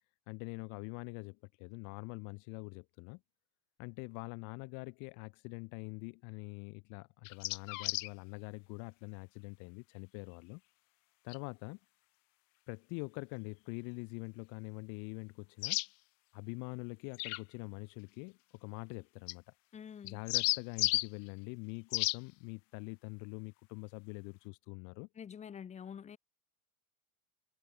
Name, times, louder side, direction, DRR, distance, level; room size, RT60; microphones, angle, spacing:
voice 1, 0.3-3.2 3.8-10.6 11.2-11.8 12.7-15.8 16.3-19.4 20.0-25.1, left 33 dB, 40° left, 1.7 m, -44 dB
sound 1, 7.3-8.1 11.3-11.4 15.6-15.9 17.1-17.4 19.3-19.4 20.1-21.1 21.9-22.2, left 24 dB, 60° left, 0.9 m, -32 dB
voice 2, 19.7-20.2 25.1-26.2, left 7 dB, 15° left, 2.5 m, -47 dB
supercardioid pair, 175°, 43 cm